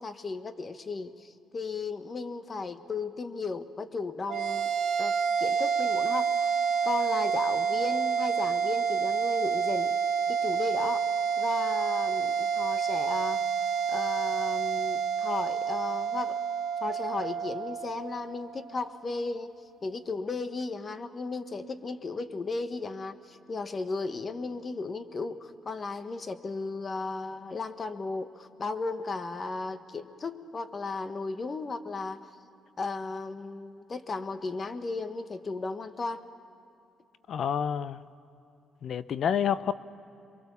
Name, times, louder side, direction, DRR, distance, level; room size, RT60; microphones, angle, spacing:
voice 1, 0.0-4.7 5.0-6.5 6.8-10.0 10.3-11.1 11.4-13.5 13.9-16.4 16.8-19.5 19.8-32.3 32.8-36.2, left 3 dB, 35° left, 10 dB, 1.3 m, -35 dB
sound 1, 4.3-18.9, right 6 dB, 70° right, 2.1 m, -28 dB
voice 2, 37.3-38.0 38.8-39.7, left 8 dB, 65° left, 15 dB, 0.6 m, -28 dB
27.5 x 23.0 x 7.0 m, 2.8 s
cardioid pair, 90°, 0 cm